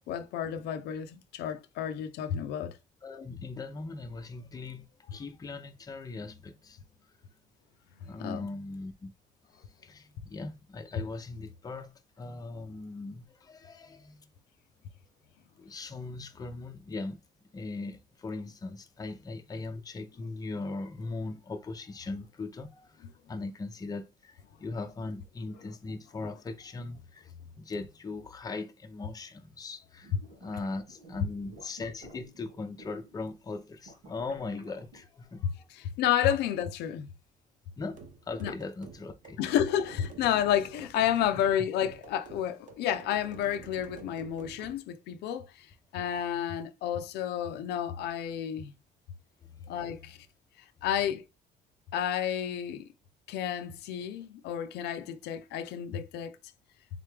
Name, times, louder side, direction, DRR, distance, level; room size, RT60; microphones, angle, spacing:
voice 1, 0.1-2.8 8.0-8.4 35.7-37.1 38.4-38.5 39.4-48.7 49.7-50.2 50.8-51.2 51.9-52.9 53.3-56.4, left 10 dB, 80° left, 0.5 m, -31 dB
voice 2, 3.0-6.8 8.0-9.1 9.5-14.3 15.6-17.2 17.5-35.7 37.8-39.4 41.3-41.4 49.6-49.7 50.0-50.1, left 3 dB, 20° left, 0.6 m, -40 dB
sound 1, 30.0-33.1 33.7-35.1, right 2 dB, 80° right, 2.2 m, -53 dB
sound 2, 37.9-44.8, right 5 dB, 50° right, 0.9 m, -49 dB
3.7 x 3.3 x 3.3 m
cardioid pair, 110°, 17 cm